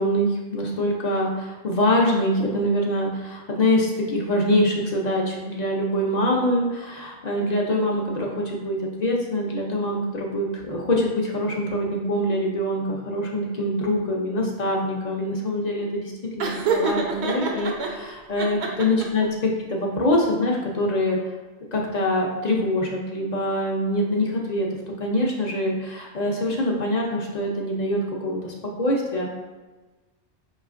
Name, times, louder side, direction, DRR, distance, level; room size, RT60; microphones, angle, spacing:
voice 1, 0.0-21.2 21.7-24.7 25.0-29.3, left 1 dB, 50° left, -1 dB, 0.6 m, -24 dB
Laughter, 16.4-17.9 18.4-19.2, right 4 dB, 80° right, 0.9 m, -26 dB
4.8 x 3.1 x 2.4 m, 1.2 s
omnidirectional pair, 1.1 m